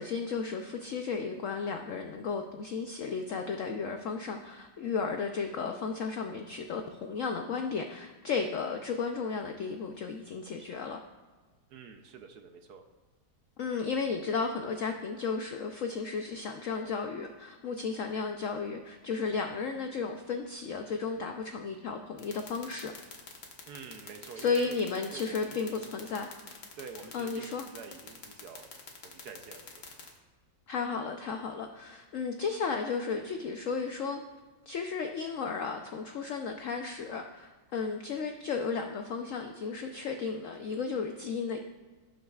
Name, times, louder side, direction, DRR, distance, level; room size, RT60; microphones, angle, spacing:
voice 1, 0.0-11.0 13.6-22.9 24.3-26.3 27.1-27.6 30.7-34.2 34.7-41.6, left 5 dB, 85° left, 5 dB, 0.7 m, -34 dB
voice 2, 11.7-12.8 23.7-24.8 25.1-26.0 26.8-28.7 29.0-29.8, right 5 dB, 70° right, 5 dB, 1.1 m, -47 dB
sound 1, 22.2-30.1, left 7 dB, 65° left, 1.8 m, -45 dB
17.5 x 6.4 x 2.4 m, 1.3 s
omnidirectional pair, 2.0 m